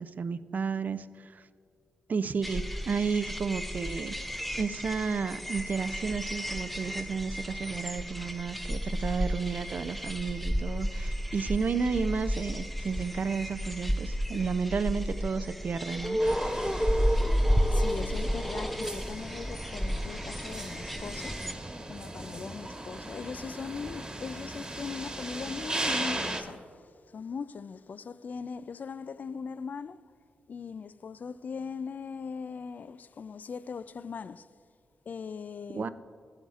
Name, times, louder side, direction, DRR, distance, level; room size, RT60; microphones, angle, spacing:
voice 1, 0.0-1.4 2.1-4.2 4.6-16.2 35.7-35.9, right 5 dB, 55° right, 0.4 m, -32 dB
sound 1, 2.4-21.5, equal, ahead, 0.5 m, -32 dB
sound 2, 16.2-26.4, right 1 dB, 25° right, 1.3 m, -38 dB
voice 2, 17.7-21.5 21.9-30.0 30.5-34.5 35.1-35.9, left 5 dB, 55° left, 0.3 m, -40 dB
15.0 x 7.9 x 2.4 m
cardioid pair, 60°, 3 cm